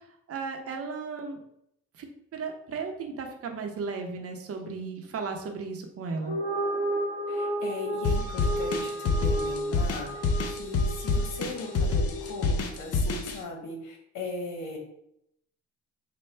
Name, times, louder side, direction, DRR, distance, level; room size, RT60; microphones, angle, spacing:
voice 1, 0.3-1.4 1.9-2.1 2.3-6.4, right 4 dB, 50° right, 3 dB, 0.7 m, -35 dB
sound 1, 6.2-12.7, right 1 dB, 25° left, 1.0 m, -33 dB
voice 2, 7.3-14.8, left 2 dB, 85° left, 2 dB, 1.0 m, -38 dB
sound 2, 8.0-13.4, left 3 dB, 55° left, 0.6 m, -27 dB
4.3 x 2.2 x 3.3 m, 0.76 s
cardioid pair, 90°, 30 cm